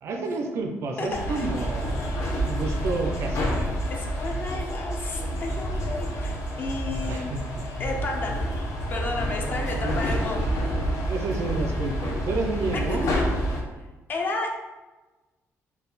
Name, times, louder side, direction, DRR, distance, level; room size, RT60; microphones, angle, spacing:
voice 1, 0.0-2.0 2.4-3.7 7.1-7.6 9.3-13.1, right 3 dB, 55° right, 4 dB, 0.5 m, -31 dB
voice 2, 1.0-1.5 3.9-7.3 7.8-10.4 12.9-13.2 14.1-14.5, left 2 dB, 35° left, 1 dB, 0.5 m, -32 dB
sound 1, 1.1-13.6, equal, 75° left, 0.7 m, -28 dB
3.9 x 2.3 x 3.9 m, 1.2 s
cardioid pair, 175°, 5 cm